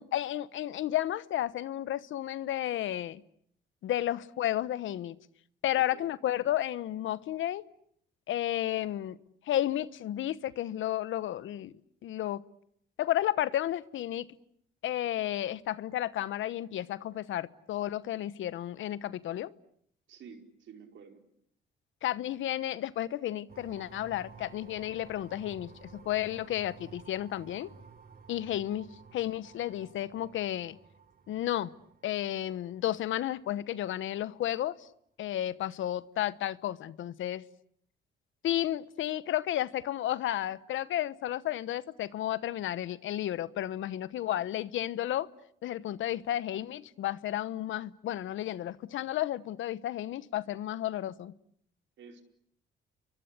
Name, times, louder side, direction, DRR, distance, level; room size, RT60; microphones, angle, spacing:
voice 1, 0.0-3.2 3.8-5.2 5.6-7.6 8.3-9.2 9.5-11.7 12.0-12.4 13.0-14.3 14.8-19.5 22.0-27.7 28.3-30.8 31.3-31.7 32.0-34.9 35.2-37.4 38.4-45.3 45.6-51.3, left 12 dB, 75° left, 1.1 m, -32 dB
voice 2, 5.7-6.1 20.1-21.2 52.0-52.2, right 6 dB, 70° right, 4.8 m, -50 dB
sound 1, 23.5-34.0, right 5 dB, 50° right, 3.4 m, -54 dB
30.0 x 23.0 x 8.3 m
cardioid pair, 90°, 20 cm